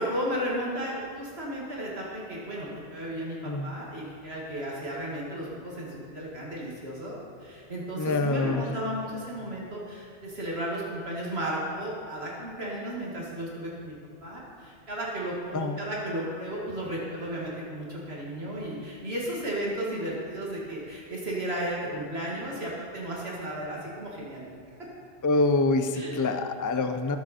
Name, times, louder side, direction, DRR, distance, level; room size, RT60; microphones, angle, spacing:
voice 1, 0.0-13.9 14.2-24.5 24.7-24.9 25.9-26.2, right 1 dB, 65° right, -4 dB, 2.3 m, -34 dB
voice 2, 8.0-8.7 15.5-15.8 25.2-27.2, left 3 dB, 25° left, 7 dB, 0.4 m, -26 dB
19.5 x 7.5 x 4.3 m, 2.2 s
omnidirectional pair, 1.2 m